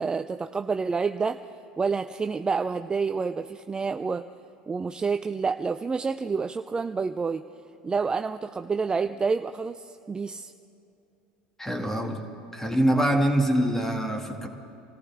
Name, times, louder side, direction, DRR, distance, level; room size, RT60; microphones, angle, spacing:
voice 1, 0.0-1.4 1.8-4.3 4.7-7.4 7.8-10.5, right 5 dB, 20° right, 8 dB, 0.4 m, -28 dB
voice 2, 11.6-12.2 12.5-14.5, right 1 dB, 10° left, 3 dB, 1.9 m, -24 dB
26.5 x 14.5 x 3.5 m, 2.7 s
supercardioid pair, 95°, 4 cm